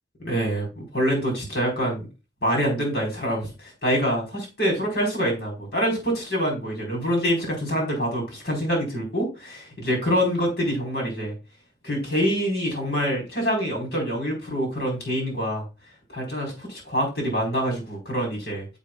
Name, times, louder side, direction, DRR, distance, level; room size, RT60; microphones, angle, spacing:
voice 1, 0.2-2.1 2.4-11.4 11.8-15.6 16.1-18.8, equal, 65° left, -1 dB, 4.5 m, -26 dB
10.0 x 7.4 x 2.4 m, 0.28 s
head